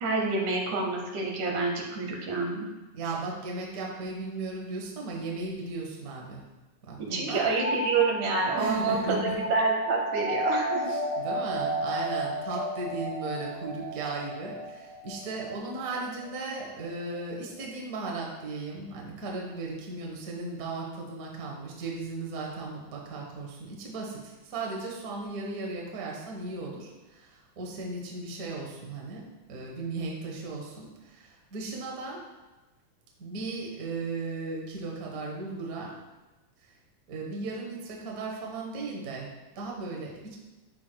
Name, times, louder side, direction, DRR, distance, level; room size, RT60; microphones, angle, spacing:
voice 1, 0.0-2.7 7.0-11.0, right 3 dB, 90° right, 0 dB, 2.6 m, -28 dB
voice 2, 2.9-6.5 6.9-7.5 8.6-9.4 10.9-32.2 33.2-35.9 37.1-40.4, right 3 dB, 50° right, -2 dB, 1.1 m, -36 dB
sound 1, 7.5-16.9, right 1 dB, 75° right, 3.1 m, -32 dB
11.5 x 4.8 x 2.2 m, 1.1 s
omnidirectional pair, 3.3 m